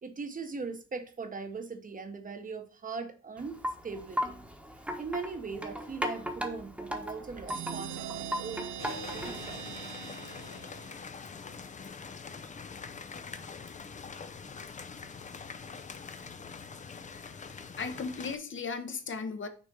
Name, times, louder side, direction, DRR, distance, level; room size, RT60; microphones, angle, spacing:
voice 1, 0.0-4.4 5.0-9.6, right 4 dB, 25° right, 1.0 m, -40 dB
Wind chime, 3.4-9.6, equal, 5° right, 1.2 m, -37 dB
sound 1, 7.5-11.0, right 10 dB, 75° right, 0.6 m, -41 dB
sound 2, 8.8-18.4, left 5 dB, 25° left, 0.5 m, -44 dB
voice 2, 17.3-19.5, left 4 dB, 40° left, 1.0 m, -37 dB
6.2 x 3.3 x 5.3 m
cardioid pair, 90°, 30 cm